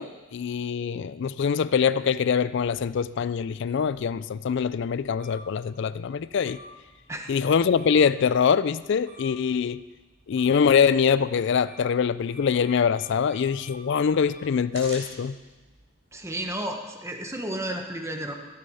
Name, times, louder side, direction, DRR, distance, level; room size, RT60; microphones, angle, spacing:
voice 1, 0.0-6.6 7.3-9.8 10.3-15.4, left 6 dB, 55° left, 16 dB, 0.3 m, -24 dB
sound 1, 2.6-16.5, equal, 60° right, 5.1 m, -50 dB
voice 2, 16.1-18.3, right 1 dB, 15° right, 3 dB, 1.0 m, -32 dB
14.5 x 8.5 x 5.6 m, 1.2 s
head